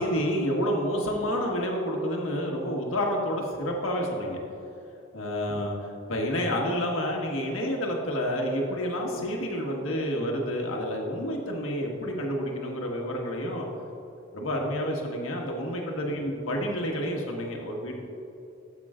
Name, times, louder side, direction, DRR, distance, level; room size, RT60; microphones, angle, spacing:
voice 1, 0.0-4.4 5.1-13.7 14.3-17.9, equal, 80° left, 0 dB, 1.5 m, -29 dB
13.0 x 7.9 x 2.5 m, 2.9 s
head